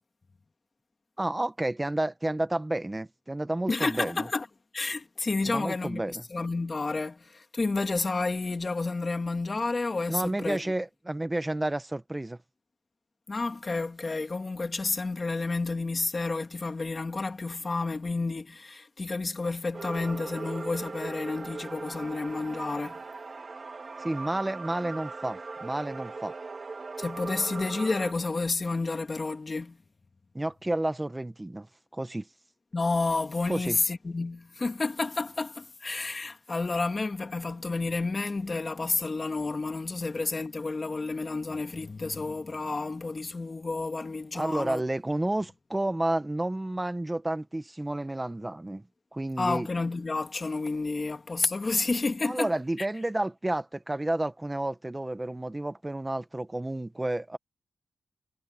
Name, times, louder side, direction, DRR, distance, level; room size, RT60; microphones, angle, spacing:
voice 1, 1.2-4.3 5.4-6.2 10.1-12.4 24.0-26.3 30.3-31.7 31.9-32.3 33.5-33.8 44.3-48.8 49.1-49.7 52.2-57.4, right 1 dB, 15° right, 1.3 m, -31 dB
voice 2, 3.7-4.5 4.7-10.7 13.3-23.0 27.0-29.8 32.7-44.8 49.4-52.5, left 3 dB, 30° left, 2.2 m, -30 dB
sound 1, 19.7-28.1, right 4 dB, 40° right, 4.0 m, -39 dB
wide cardioid pair, 105°, 0 cm